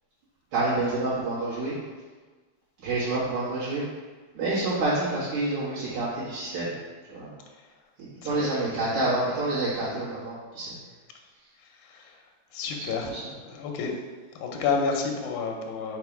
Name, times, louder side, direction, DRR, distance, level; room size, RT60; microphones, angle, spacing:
voice 1, 0.5-1.7 2.8-3.8 4.3-6.7 7.1-7.3 8.0-10.8 13.1-13.2, right 2 dB, 75° right, -11 dB, 3.0 m, -28 dB
voice 2, 11.8-12.2 12.5-13.1 13.5-14.0 14.3-16.0, left 5 dB, 85° left, 2 dB, 2.2 m, -30 dB
5.1 x 4.7 x 4.7 m, 1.4 s
omnidirectional pair, 3.4 m